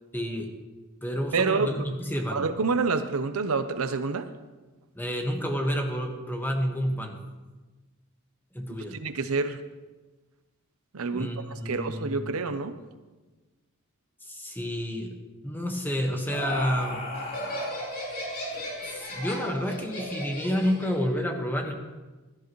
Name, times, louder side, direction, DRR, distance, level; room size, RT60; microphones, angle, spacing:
voice 1, 0.1-0.5 1.0-2.4 4.9-7.2 8.5-9.0 11.1-12.4 14.2-15.1 15.4-17.0 18.8-21.7, equal, 10° left, 2 dB, 1.4 m, -29 dB
voice 2, 1.3-1.7 2.3-4.3 9.0-9.6 10.9-12.7, right 4 dB, 80° right, 10 dB, 0.7 m, -27 dB
Laughter, 15.8-21.0, left 1 dB, 45° left, 4.0 m, -34 dB
16.0 x 13.0 x 3.1 m, 1.2 s
head